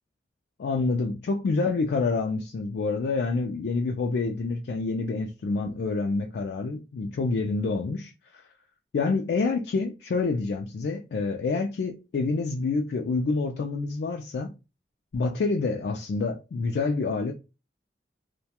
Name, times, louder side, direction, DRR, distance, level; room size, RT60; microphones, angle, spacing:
voice 1, 0.6-8.1 8.9-14.5 15.1-17.3, left 3 dB, 70° left, 0.3 m, -27 dB
2.2 x 2.2 x 2.8 m
head